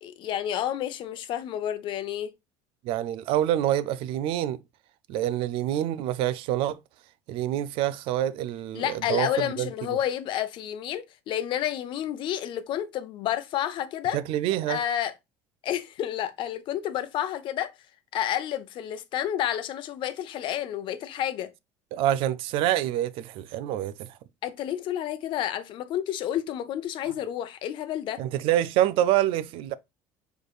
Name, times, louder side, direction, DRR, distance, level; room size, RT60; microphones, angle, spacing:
voice 1, 0.0-2.3 8.7-14.2 14.7-15.1 15.6-17.7 18.1-21.5 24.4-28.2, left 11 dB, 55° left, 0.7 m, -30 dB
voice 2, 2.8-4.6 5.1-6.8 7.3-9.3 9.6-9.7 14.1-14.8 21.9-24.1 28.2-29.8, right 12 dB, 65° right, 0.5 m, -26 dB
4.9 x 4.5 x 2.4 m
supercardioid pair, 100°, 10 cm